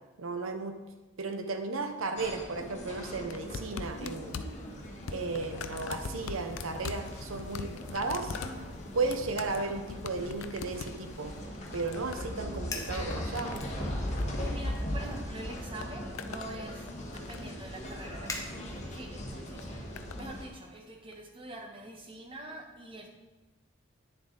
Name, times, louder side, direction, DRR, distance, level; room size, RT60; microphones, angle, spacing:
voice 1, 0.2-0.8 1.2-4.4 5.1-8.4 8.9-11.3 11.7-13.6, right 3 dB, 90° right, 6 dB, 0.8 m, -34 dB
sound 1, 2.2-20.5, equal, 35° left, 1.5 m, -39 dB
sound 2, 3.3-15.2 15.5-16.5 16.9-17.6 18.5-18.8 19.6-20.2 21.1-21.2, left 5 dB, 80° left, 0.5 m, -43 dB
Fire, 12.7-13.0 13.6-14.4 14.7-15.1 15.7-19.1, left 3 dB, 15° left, 0.9 m, -43 dB
voice 2, 14.4-23.1, right 1 dB, 25° right, 2 dB, 1.2 m, -45 dB
9.7 x 6.9 x 3.9 m, 1.1 s
head